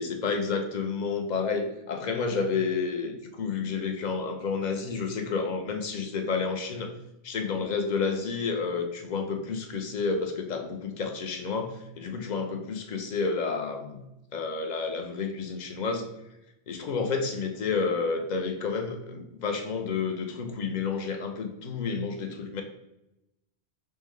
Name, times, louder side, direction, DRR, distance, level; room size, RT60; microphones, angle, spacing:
voice 1, 0.0-6.9 7.2-14.0 14.3-16.1 16.7-22.6, left 5 dB, 55° left, 5 dB, 0.6 m, -30 dB
5.3 x 2.1 x 3.1 m, 0.89 s
omnidirectional pair, 1.1 m